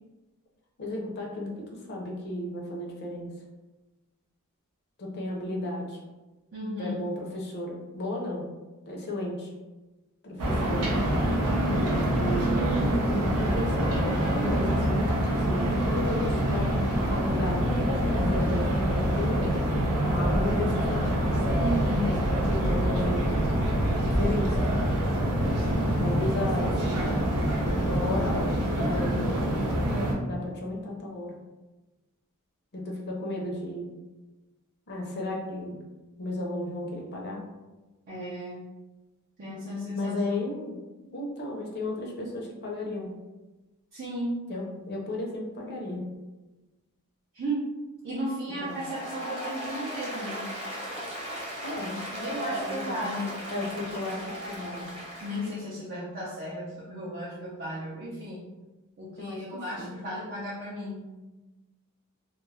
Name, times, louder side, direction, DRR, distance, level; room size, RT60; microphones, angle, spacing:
voice 1, 0.8-3.3 5.0-6.0 6.8-8.5 8.9-9.5 10.2-10.9 11.7-12.7 13.3-17.7 18.2-19.6 20.0-21.1 22.5-23.5 24.0-24.8 26.0-26.8 27.7-29.3 30.2-31.3 32.7-33.9 34.9-35.8 36.2-37.5 39.9-40.8 41.1-43.1 44.5-46.1 48.6-48.8 51.6-52.0 52.5-53.1 53.5-54.9 59.2-59.4 59.8-59.9, left 1 dB, 50° left, -1 dB, 0.6 m, -34 dB
voice 2, 6.5-7.0 21.6-22.1 25.6-26.1 38.1-38.7 39.4-40.4 43.9-44.4 47.3-47.7 48.0-50.5 51.7-53.4 55.2-58.4 59.0-61.2, equal, 45° right, -7 dB, 0.5 m, -34 dB
sound 1, 10.4-30.1, equal, 90° right, 0.6 m, -25 dB
Applause, 48.6-55.6, equal, 25° right, 0.9 m, -37 dB
2.2 x 2.0 x 3.2 m, 1.1 s
head